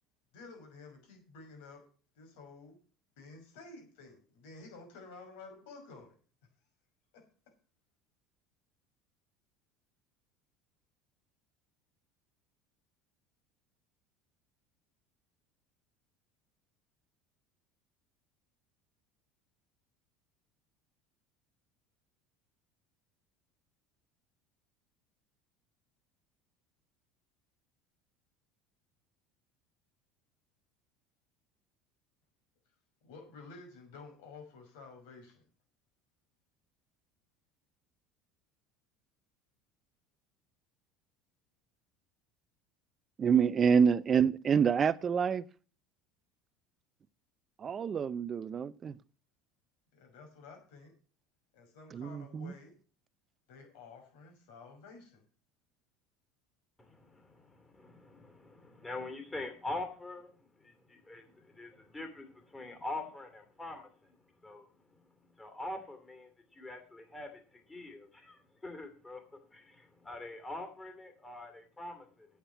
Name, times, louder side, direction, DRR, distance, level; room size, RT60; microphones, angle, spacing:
voice 1, 0.3-1.8 2.2-2.8 3.2-6.1 7.1-7.2 33.0-35.4 49.9-50.9 51.5-52.7 53.5-55.2, left 3 dB, 80° left, 5.7 m, -52 dB
voice 2, 43.2-45.4 47.6-48.9 51.9-52.5, right 7 dB, 30° right, 0.5 m, -27 dB
voice 3, 56.8-60.3 60.6-63.9 64.4-64.7 65.4-72.3, left 2 dB, 15° left, 2.8 m, -44 dB
8.9 x 7.3 x 8.0 m
supercardioid pair, 115°, 0 cm